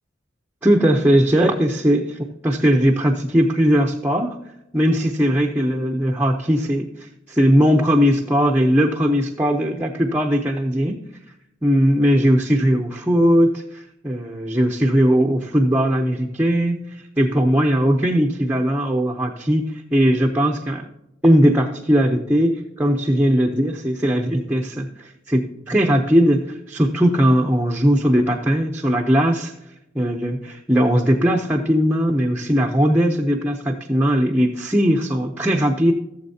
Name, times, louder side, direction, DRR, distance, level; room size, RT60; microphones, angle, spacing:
voice 1, 0.6-4.4 4.7-11.0 11.6-20.9 21.2-29.5 29.9-35.9, equal, 10° right, 1 dB, 0.7 m, -19 dB
16.0 x 7.2 x 2.8 m, 0.87 s
head